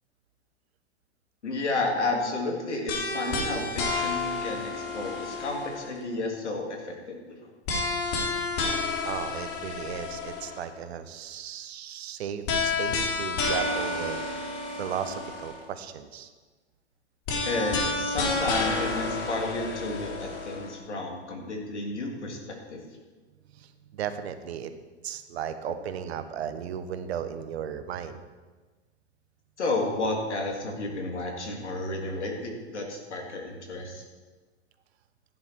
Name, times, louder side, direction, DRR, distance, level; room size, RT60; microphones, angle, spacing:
voice 1, 1.4-7.3 17.4-22.4 22.7-22.8 29.6-34.0, left 2 dB, 85° left, 1 dB, 3.4 m, -31 dB
sound 1, 2.9-6.0 7.7-10.6 12.5-15.6 17.3-20.7, left 3 dB, 40° left, 3.5 m, -30 dB
voice 2, 9.0-14.5 14.8-16.3 23.5-24.7 25.0-28.2, right 8 dB, 65° right, 10 dB, 1.4 m, -35 dB
16.5 x 10.5 x 4.7 m, 1.3 s
hypercardioid pair, 110°, 34 cm